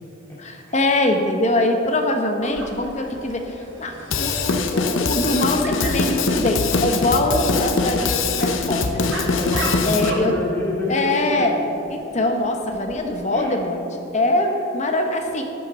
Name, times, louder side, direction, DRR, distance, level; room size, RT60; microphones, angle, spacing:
voice 1, 0.4-9.3 9.8-10.3 10.9-11.6 11.9-13.8 14.1-15.4, left 1 dB, 35° left, 3 dB, 0.9 m, -23 dB
Dog, 2.4-13.0, right 2 dB, 65° right, 1.5 m, -38 dB
Drum kit / Drum, 4.1-10.1, left 4 dB, 75° left, 0.7 m, -22 dB
voice 2, 9.0-11.7 13.3-13.5, left 2 dB, 10° left, -7 dB, 2.4 m, -28 dB
12.5 x 7.9 x 4.2 m, 2.9 s
head